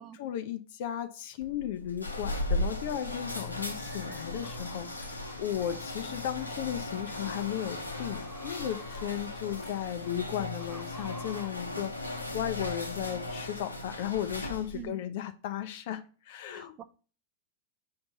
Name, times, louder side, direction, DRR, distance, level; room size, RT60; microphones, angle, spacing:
voice 1, 0.0-16.8, left 11 dB, 50° left, 0.5 m, -35 dB
sound 1, 1.4-14.9, left 2 dB, 85° left, 0.8 m, -37 dB
sound 2, 3.8-11.5, left 1 dB, ahead, 1.4 m, -53 dB
voice 2, 16.5-16.8, right 11 dB, 30° right, 0.5 m, -44 dB
5.7 x 4.3 x 3.9 m
figure-of-eight pair, 90°, 0 cm